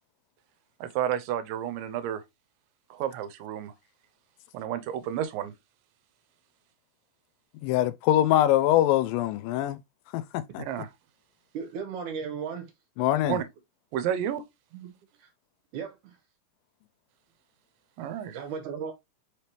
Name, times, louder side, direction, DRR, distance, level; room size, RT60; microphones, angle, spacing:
voice 1, 0.8-2.2 3.0-3.7 4.5-5.5 10.7-10.9 13.3-13.4 13.9-14.4 18.0-18.4, right 10 dB, 85° right, 2.3 m, -31 dB
voice 2, 7.6-9.8 10.1-10.6 13.0-13.4, left 13 dB, 85° left, 2.2 m, -23 dB
voice 3, 11.5-12.7 14.7-14.9 15.2-15.3 15.7-16.2 18.3-18.9, right 6 dB, 70° right, 2.3 m, -36 dB
5.3 x 3.4 x 2.8 m
omnidirectional pair, 3.9 m